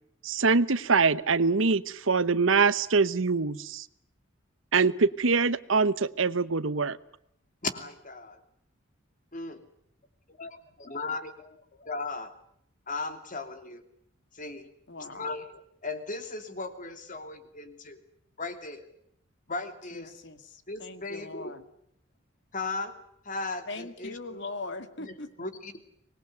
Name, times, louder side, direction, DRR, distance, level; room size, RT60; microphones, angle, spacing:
voice 1, 0.2-3.9 4.7-7.0, right 4 dB, 75° right, 16 dB, 1.0 m, -24 dB
voice 2, 7.6-8.4 9.3-9.6 10.3-12.3 12.9-13.8 14.3-14.7 15.1-18.0 18.4-18.9 19.5-20.1 20.7-21.5 22.5-23.0 23.2-24.4 25.0-25.8, left 3 dB, 40° left, 8 dB, 2.8 m, -37 dB
voice 3, 14.9-15.4 19.9-21.7 23.7-25.3, left 3 dB, 60° left, 10 dB, 2.0 m, -40 dB
25.0 x 20.5 x 9.4 m, 0.72 s
head